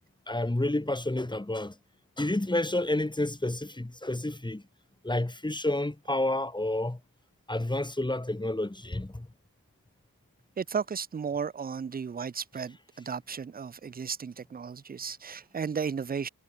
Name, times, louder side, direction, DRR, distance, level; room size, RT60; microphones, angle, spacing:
voice 1, 0.3-1.7 2.2-4.6 5.0-7.0 7.5-9.3, left 1 dB, 10° left, 1.2 m, -29 dB
voice 2, 10.6-16.3, right 6 dB, 25° right, 0.4 m, -34 dB
wide cardioid pair, 60°, 37 cm